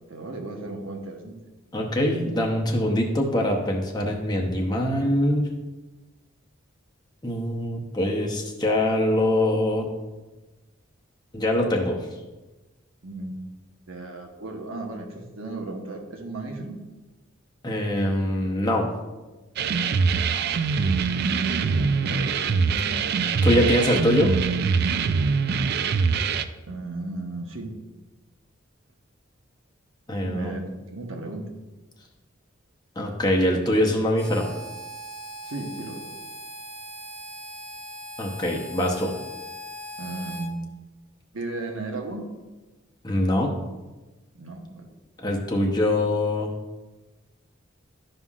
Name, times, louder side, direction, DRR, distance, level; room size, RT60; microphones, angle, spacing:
voice 1, 0.1-1.4 13.0-13.3 13.9-16.8 19.9-20.7 21.1-24.0 26.7-27.7 30.2-31.5 35.4-36.0 40.0-40.6 41.3-42.3 44.3-44.9, right 2 dB, 80° right, 2 dB, 1.1 m, -35 dB
voice 2, 1.7-5.5 7.2-9.9 11.3-12.1 17.6-18.9 23.4-24.3 30.1-30.5 33.0-34.5 38.2-39.1 43.0-43.6 45.2-46.5, left 1 dB, 20° left, 0 dB, 0.8 m, -23 dB
sound 1, 19.6-26.4, right 5 dB, 50° right, 0.3 m, -23 dB
Harmonica, 34.1-40.5, equal, 5° left, 1.2 m, -39 dB
12.0 x 5.5 x 2.4 m, 1.2 s
head